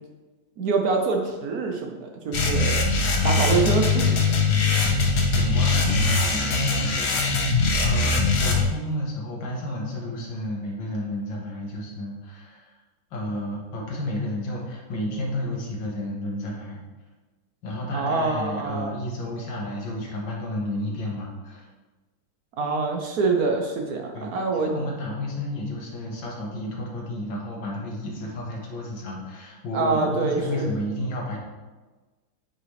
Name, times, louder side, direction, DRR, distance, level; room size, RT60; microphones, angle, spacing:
voice 1, 0.6-2.8 3.2-4.2 17.9-18.9 22.6-24.7 29.7-30.7, right 4 dB, 60° right, 2 dB, 1.1 m, -25 dB
sound 1, 2.3-8.6, left 3 dB, 60° left, 1.5 m, -21 dB
voice 2, 5.3-12.7 13.1-16.8 17.6-21.7 22.6-22.8 24.1-31.4, left 1 dB, 85° left, -2 dB, 2.2 m, -31 dB
8.9 x 5.3 x 3.3 m, 1.3 s
omnidirectional pair, 2.1 m